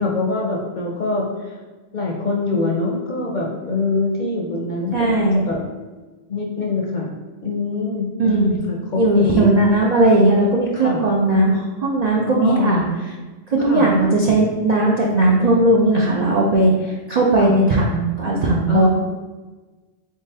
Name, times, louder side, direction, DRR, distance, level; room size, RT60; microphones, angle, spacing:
voice 1, 0.0-1.5 1.9-5.6 6.3-7.1 7.4-9.5 10.7-11.0 12.2-12.7 13.7-13.9 17.4-17.5 18.7-18.9, left 3 dB, 50° left, -2 dB, 0.6 m, -24 dB
voice 2, 4.9-5.4 8.2-8.6 9.0-13.1 13.5-18.9, right 2 dB, 55° right, -3 dB, 0.4 m, -17 dB
3.9 x 3.8 x 2.7 m, 1.3 s
omnidirectional pair, 1.2 m